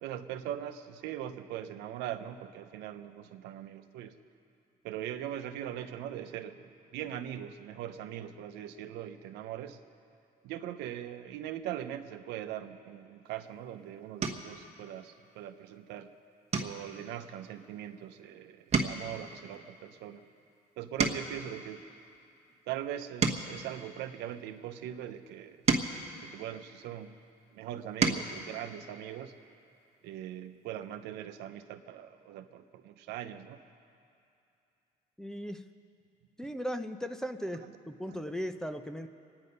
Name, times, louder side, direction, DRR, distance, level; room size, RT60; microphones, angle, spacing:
voice 1, 0.0-4.1 4.8-9.8 10.4-16.1 16.6-20.2 20.8-21.9 22.7-25.6 26.2-27.2 27.5-29.3 30.0-33.6 38.1-38.2, right 11 dB, 90° right, 8 dB, 0.8 m, -41 dB
sound 1, 13.3-13.6 14.2-14.6 15.1-15.4 15.8-16.0 16.5-18.3 18.6-21.5 22.1-24.6 25.2-27.1 27.6-28.4 29.8-29.9 30.2-30.3, right 4 dB, 40° right, 1.2 m, -34 dB
voice 2, 35.2-35.6 36.4-37.6 37.9-39.1, equal, 5° left, 8 dB, 0.6 m, -37 dB
24.0 x 9.8 x 5.4 m, 2.6 s
cardioid pair, 110°, 17 cm